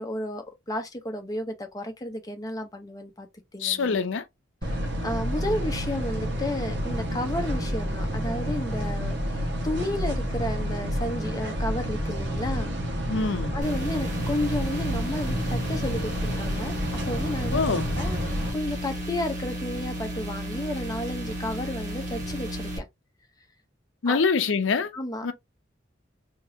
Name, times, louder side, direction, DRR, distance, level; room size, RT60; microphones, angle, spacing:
voice 1, 0.0-3.3 3.5-4.0 4.6-12.7 13.5-16.8 17.1-17.6 18.0-22.8 24.1-24.2 24.9-25.3, left 1 dB, 20° left, 0.7 m, -32 dB
voice 2, 3.6-4.2 13.1-13.5 17.5-17.8 24.0-24.9 25.2-25.3, left 5 dB, 75° left, 0.6 m, -24 dB
sound 1, 4.6-18.5, equal, 60° right, 1.1 m, -29 dB
sound 2, 13.6-22.8, equal, 40° right, 1.5 m, -33 dB
3.6 x 2.8 x 2.6 m
head